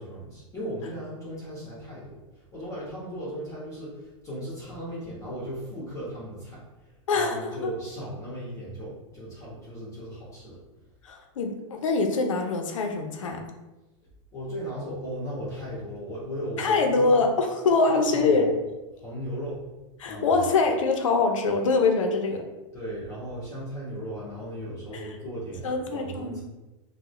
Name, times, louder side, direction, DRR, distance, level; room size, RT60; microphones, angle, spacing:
voice 1, 0.0-10.6 14.3-17.2 17.9-18.5 18.9-19.6 20.0-20.4 22.7-26.4, equal, 20° left, -7 dB, 1.1 m, -37 dB
voice 2, 7.1-7.7 11.0-13.4 16.6-18.5 20.0-22.4 24.9-25.1 25.6-26.4, left 3 dB, 90° left, 4 dB, 0.6 m, -24 dB
3.6 x 2.3 x 3.1 m, 1.1 s
hypercardioid pair, 135°, 16 cm